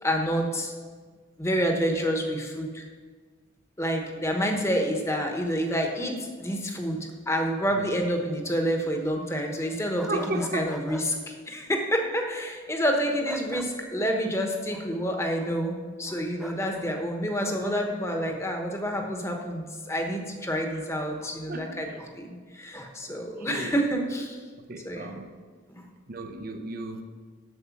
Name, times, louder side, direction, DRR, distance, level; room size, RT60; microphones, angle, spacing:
voice 1, 0.0-0.7 1.4-2.8 3.8-21.9 22.2-24.4 24.8-25.2 25.7-25.8, equal, 15° left, 2 dB, 1.1 m, -28 dB
sound 1, 10.0-11.1 13.2-13.7 16.4-16.6 17.4-17.8, equal, ahead, 0.6 m, -41 dB
voice 2, 10.1-10.7 20.7-20.8 21.5-22.0 23.1-23.8 24.6-25.3 26.1-27.0, right 2 dB, 45° right, 6 dB, 0.7 m, -35 dB
8.0 x 6.9 x 7.1 m, 1.5 s
head